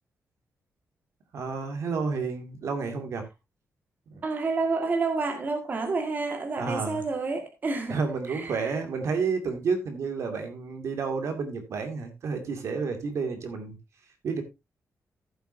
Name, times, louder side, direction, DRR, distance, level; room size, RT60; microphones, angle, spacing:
voice 1, 1.3-3.3 4.1-4.2 6.6-7.0 7.9-13.8 14.2-14.4, right 5 dB, 65° right, 2.4 m, -30 dB
voice 2, 4.2-8.0 8.3-8.6, right 3 dB, 35° right, 1.9 m, -29 dB
14.5 x 8.0 x 2.7 m
wide cardioid pair, 160°, 5 cm